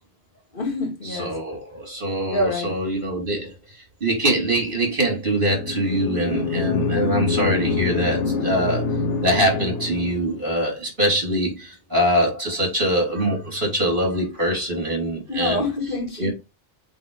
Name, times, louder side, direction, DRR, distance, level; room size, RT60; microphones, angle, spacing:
voice 1, 0.5-1.4 2.3-2.8 15.3-16.3, left 2 dB, 50° left, 2.1 m, -26 dB
voice 2, 1.1-3.5 4.0-8.9 9.2-15.6 16.2-16.3, right 1 dB, 50° right, 3.5 m, -23 dB
sound 1, 5.5-10.4, left 4 dB, 85° left, 1.3 m, -25 dB
8.4 x 4.0 x 3.3 m
omnidirectional pair, 1.2 m